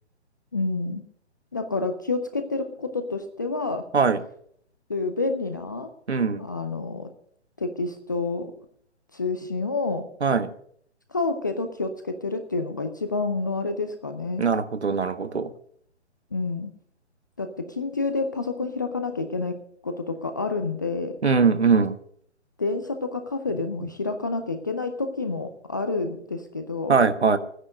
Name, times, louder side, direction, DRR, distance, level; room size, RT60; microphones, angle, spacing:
voice 1, 0.5-1.0 1.5-3.9 4.9-5.9 6.4-7.1 7.6-8.5 9.1-10.1 11.1-14.5 16.3-16.7 17.4-21.2 22.6-27.0, left 3 dB, 15° left, 8 dB, 0.5 m, -29 dB
voice 2, 6.1-6.4 10.2-10.5 14.4-15.5 21.2-21.9 26.9-27.4, right 5 dB, 65° right, 12 dB, 1.3 m, -21 dB
14.5 x 9.8 x 6.4 m, 0.64 s
figure-of-eight pair, 135°, 35 cm